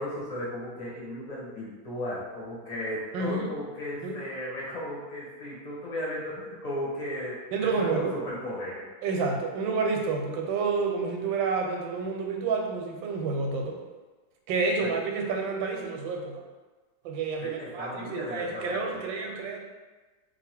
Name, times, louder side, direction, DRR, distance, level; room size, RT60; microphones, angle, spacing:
voice 1, 0.0-8.9 14.8-14.9 17.4-19.0, left 1 dB, 30° left, -5 dB, 0.8 m, -35 dB
voice 2, 3.1-3.5 4.0-4.2 7.5-8.1 9.0-13.8 14.5-16.4 17.0-19.6, right 4 dB, 85° right, 2 dB, 1.4 m, -29 dB
2.8 x 2.7 x 4.3 m, 1.3 s
omnidirectional pair, 2.1 m